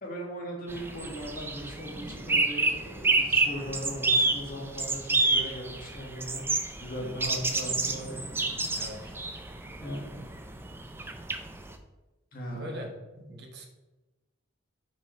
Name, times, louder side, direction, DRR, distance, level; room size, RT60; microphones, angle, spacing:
voice 1, 0.0-6.5 6.8-8.4 8.9-9.1 9.8-10.2 12.3-12.9, equal, 45° left, -2 dB, 1.7 m, -39 dB
sound 1, 0.7-11.7, right 3 dB, 10° right, 0.4 m, -29 dB
voice 2, 12.5-12.9 13.2-13.7, equal, 55° right, 2 dB, 1.0 m, -41 dB
5.9 x 4.9 x 4.4 m, 1.1 s
head